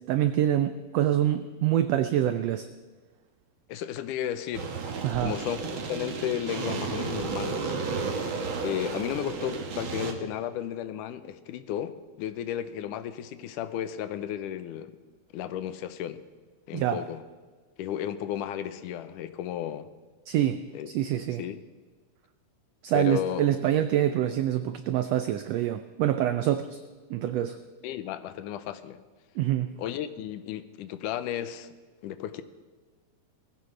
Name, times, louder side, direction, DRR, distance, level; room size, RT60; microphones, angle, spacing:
voice 1, 0.1-2.7 5.0-5.4 16.7-17.0 20.3-21.4 22.8-26.8 27.1-27.6 29.4-29.7, right 11 dB, 85° right, 10 dB, 1.4 m, -26 dB
voice 2, 3.7-4.7 5.2-5.6 5.9-7.8 8.6-15.0 15.3-16.2 16.7-17.2 17.8-19.9 20.7-20.9 21.4-21.6 22.9-23.5 27.8-29.0 29.8-31.7 32.0-32.4, left 10 dB, 85° left, 11 dB, 2.3 m, -33 dB
sound 1, 4.5-10.1, right 4 dB, 55° right, 1.6 m, -33 dB
20.5 x 15.5 x 3.3 m, 1.4 s
omnidirectional pair, 3.6 m